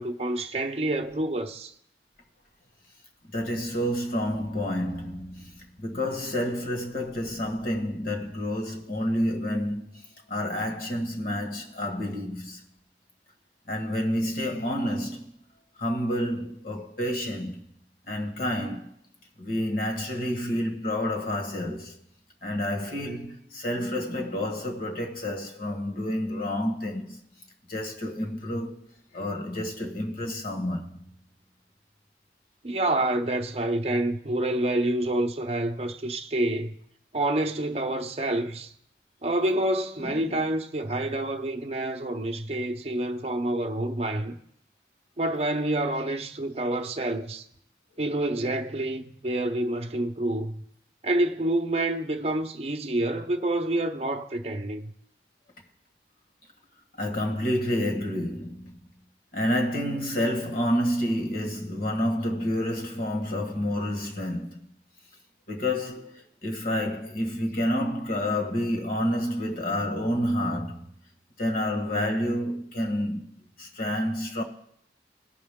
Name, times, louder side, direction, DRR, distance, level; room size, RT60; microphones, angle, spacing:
voice 1, 0.0-1.7 32.6-36.7 37.1-38.7 39.2-44.4 45.2-47.4 48.0-50.6 51.0-54.9, right 1 dB, 35° right, 0.7 m, -28 dB
voice 2, 3.3-10.0 10.3-12.7 13.7-15.3 15.8-17.6 18.1-18.9 19.4-22.0 22.4-27.2 27.7-31.1 40.0-40.2 57.0-58.8 59.3-64.6 65.5-70.9 71.4-74.4, left 1 dB, 55° left, 1.6 m, -29 dB
18.0 x 6.2 x 3.6 m
head